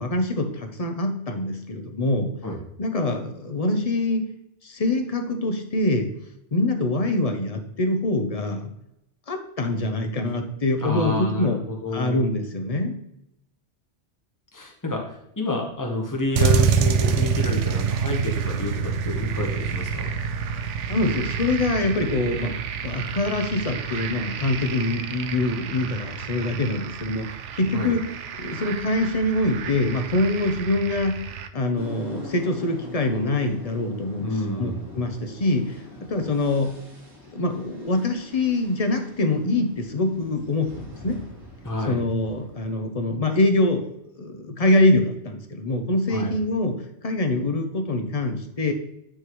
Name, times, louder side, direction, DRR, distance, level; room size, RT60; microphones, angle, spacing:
voice 1, 0.0-2.3 2.8-4.3 4.6-6.1 6.5-8.7 9.3-11.6 11.9-12.9 20.9-22.5 22.8-28.0 28.4-31.2 31.5-34.3 34.6-35.8 36.1-36.8 37.3-41.2 41.9-43.9 44.2-46.8 47.0-48.7, left 2 dB, 35° left, 5 dB, 0.8 m, -24 dB
voice 2, 10.8-12.2 14.5-20.1 27.7-27.9 34.2-34.9 41.6-42.0 46.1-46.3, left 2 dB, 15° left, 1 dB, 1.1 m, -29 dB
sound 1, 16.3-31.5, right 6 dB, 90° right, 0.9 m, -27 dB
sound 2, 31.8-42.7, left 2 dB, 15° right, 2.4 m, -43 dB
9.5 x 3.8 x 3.1 m, 0.80 s
omnidirectional pair, 1.2 m